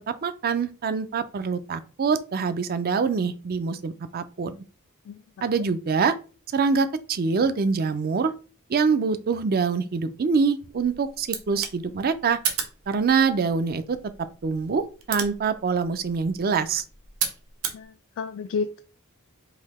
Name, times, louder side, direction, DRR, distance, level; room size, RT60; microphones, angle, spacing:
voice 1, 0.1-4.6 5.4-6.1 6.5-8.3 8.7-12.4 12.9-14.0 14.4-16.8, right 5 dB, 45° right, 0.4 m, -25 dB
sound 1, 10.7-17.8, right 7 dB, 70° right, 0.9 m, -35 dB
voice 2, 17.7-18.8, left 5 dB, 65° left, 0.3 m, -31 dB
4.0 x 2.7 x 4.1 m
head